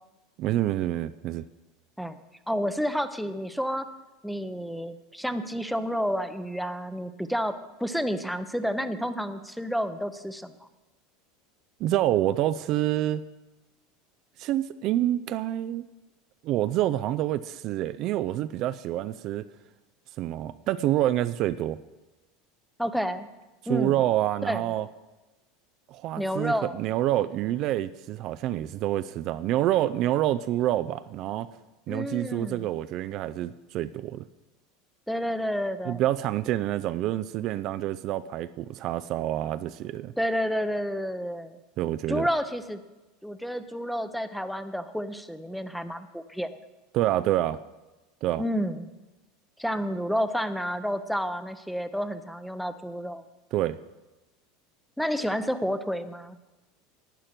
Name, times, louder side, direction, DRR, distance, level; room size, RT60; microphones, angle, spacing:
voice 1, 0.4-1.4 11.8-13.2 14.4-15.9 16.4-19.5 20.2-21.8 23.7-24.9 25.9-31.5 31.9-34.3 35.9-40.1 41.8-42.3 46.9-47.6 48.2-48.4 53.5-53.8, right 13 dB, 50° right, 12 dB, 0.4 m, -27 dB
voice 2, 2.5-3.9 4.2-10.5 22.8-23.3 23.7-23.9 24.4-24.6 26.2-26.7 31.9-32.7 35.1-36.0 40.2-41.6 42.1-42.8 43.2-46.5 48.4-48.9 49.6-53.2 55.0-56.4, equal, ahead, 11 dB, 0.8 m, -30 dB
11.5 x 8.9 x 5.9 m, 1.1 s
supercardioid pair, 115°, 0 cm